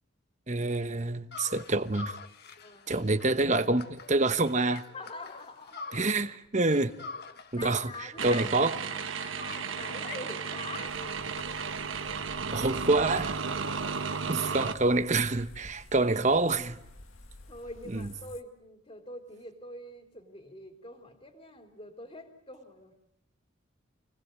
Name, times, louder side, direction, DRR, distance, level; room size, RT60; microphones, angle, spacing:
voice 1, 0.5-2.1 2.9-4.8 5.9-6.9 7.5-7.9 8.2-8.8 12.5-13.4 14.3-16.8 17.9-18.1, right 2 dB, 35° right, 1.2 m, -27 dB
sound 1, 1.3-6.4 6.7-12.2, left 4 dB, 50° left, 1.5 m, -46 dB
voice 2, 4.9-5.9 7.5-8.4 9.5-11.0 13.5-14.2 17.5-22.9, left 2 dB, 25° left, 3.2 m, -45 dB
sound 2, 8.2-14.7, right 5 dB, 70° right, 1.2 m, -34 dB
sound 3, 10.8-18.4, left 1 dB, 70° left, 2.1 m, -51 dB
29.0 x 20.0 x 9.5 m
head